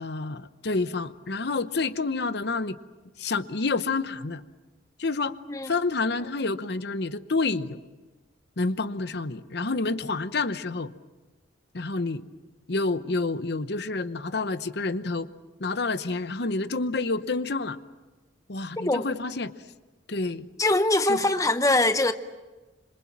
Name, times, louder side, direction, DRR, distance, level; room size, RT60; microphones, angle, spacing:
voice 1, 0.0-2.8 3.2-4.4 5.0-5.3 5.7-7.8 8.6-10.9 11.7-12.2 12.7-15.3 15.6-17.8 18.5-19.5 20.1-20.5 21.1-21.3, left 3 dB, 60° left, 0.9 m, -28 dB
voice 2, 20.6-22.1, left 2 dB, 15° left, 0.8 m, -22 dB
26.5 x 26.5 x 7.4 m
head